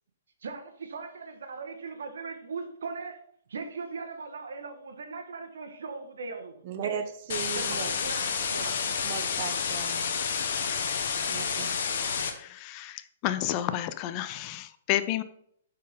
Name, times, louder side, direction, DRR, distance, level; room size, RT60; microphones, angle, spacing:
voice 1, 0.4-3.2 3.5-7.0 7.5-8.8, right 4 dB, 85° right, 6 dB, 1.2 m, -39 dB
voice 2, 6.6-7.9 9.0-10.0 11.3-11.7, right 8 dB, 45° right, 9 dB, 0.8 m, -36 dB
sound 1, 7.3-12.3, left 6 dB, 65° left, 1.0 m, -30 dB
voice 3, 12.2-15.2, left 13 dB, 35° left, 12 dB, 0.4 m, -31 dB
5.4 x 4.4 x 5.1 m, 0.67 s
hypercardioid pair, 145°, 0 cm